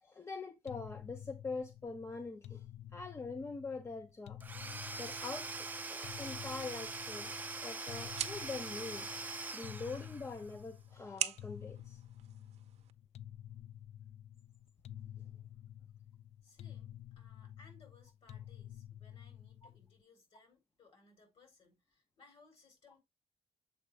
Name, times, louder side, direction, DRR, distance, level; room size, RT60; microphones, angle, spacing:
voice 1, 0.0-2.6 2.9-4.4 5.0-9.1 9.5-12.0, left 3 dB, 25° left, 0.7 m, -44 dB
sound 1, 0.7-20.0, left 11 dB, 70° left, 0.4 m, -51 dB
Domestic sounds home sounds / Tools, 4.4-10.5, right 3 dB, 15° right, 0.5 m, -43 dB
sound 2, 6.9-12.9, right 10 dB, 75° right, 0.6 m, -45 dB
voice 2, 16.4-23.0, left 3 dB, 55° left, 3.9 m, -64 dB
7.2 x 4.7 x 3.3 m
cardioid pair, 130°, 11 cm